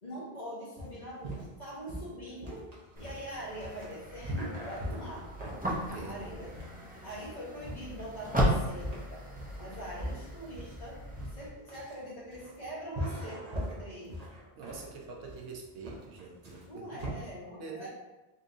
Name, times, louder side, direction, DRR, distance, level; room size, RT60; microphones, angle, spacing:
voice 1, 0.0-2.6 2.9-5.3 6.0-6.5 7.0-9.3 9.6-11.0 11.3-14.2 16.7-17.9, equal, 45° left, -7 dB, 1.3 m, -43 dB
sound 1, 0.8-17.1, equal, 40° right, 1.0 m, -41 dB
sound 2, 3.0-11.5, equal, 10° right, 0.5 m, -36 dB
voice 2, 5.7-6.2 14.6-17.0 17.6-17.9, right 4 dB, 70° right, 1 dB, 0.9 m, -45 dB
4.1 x 3.3 x 2.6 m, 1.1 s
omnidirectional pair, 1.1 m